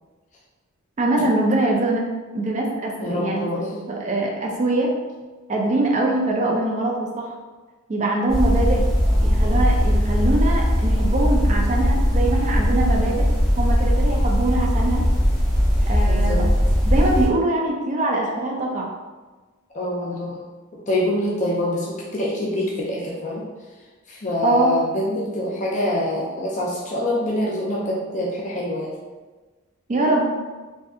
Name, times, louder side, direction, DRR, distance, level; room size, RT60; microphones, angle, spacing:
voice 1, 1.0-2.0 2.3-3.5 3.9-4.9 5.5-7.3 7.9-8.8 9.2-13.3 13.6-15.0 15.9-16.5 16.8-18.9 24.4-24.7 29.9-30.3, right 2 dB, 35° right, -2 dB, 0.4 m, -23 dB
voice 2, 3.0-3.7 16.1-16.5 19.7-20.4 20.9-21.9 22.1-23.4 24.1-28.9, left 1 dB, 35° left, -4 dB, 0.5 m, -25 dB
sound 1, 8.3-17.3, equal, ahead, 0.9 m, -19 dB
3.6 x 2.6 x 2.4 m, 1.3 s
head